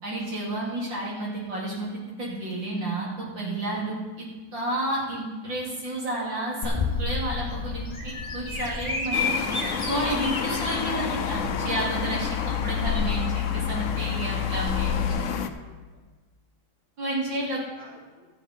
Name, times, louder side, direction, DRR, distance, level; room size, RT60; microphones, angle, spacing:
voice 1, 0.0-1.9 2.2-3.1 3.4-4.3 4.5-9.3 9.9-12.3 12.6-15.3 17.0-17.6, right 1 dB, 65° right, -5 dB, 3.8 m, -31 dB
Bird vocalization bird call bird song, 6.6-15.1, left 6 dB, 15° left, 1.6 m, -29 dB
sound 1, 9.1-15.5, left 6 dB, 65° left, 0.7 m, -31 dB
voice 2, 14.9-16.0 17.4-18.3, equal, 5° right, -7 dB, 3.5 m, -51 dB
13.5 x 9.2 x 4.5 m, 1.3 s
omnidirectional pair, 2.2 m